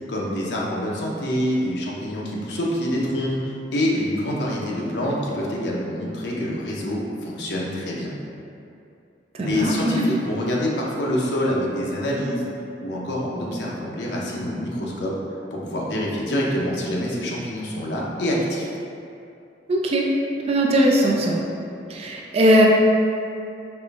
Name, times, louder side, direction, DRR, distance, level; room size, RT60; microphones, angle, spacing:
voice 1, 0.1-8.1 9.4-12.5 12.8-15.1 15.5-18.7, equal, 65° left, -4 dB, 0.6 m, -26 dB
voice 2, 9.4-10.0 19.7-20.1 20.5-21.4 21.9-22.7, equal, 35° right, -1 dB, 0.3 m, -19 dB
4.8 x 2.5 x 2.4 m, 2.6 s
head